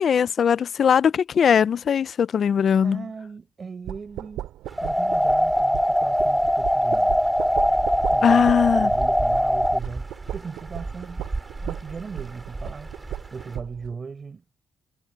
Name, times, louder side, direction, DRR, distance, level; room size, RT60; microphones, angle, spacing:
voice 1, 0.0-3.1 8.2-8.9, left 7 dB, 55° left, 0.5 m, -20 dB
voice 2, 2.8-4.5 4.8-7.2 8.1-11.2 11.6-12.9 13.3-14.4, right 5 dB, 40° right, 4.4 m, -38 dB
sound 1, 3.9-13.9, right 13 dB, 90° right, 2.4 m, -37 dB
sound 2, 4.6-13.6, right 2 dB, 20° right, 3.5 m, -38 dB
sound 3, 4.8-9.8, equal, ahead, 0.7 m, -21 dB
cardioid pair, 90°, 0 cm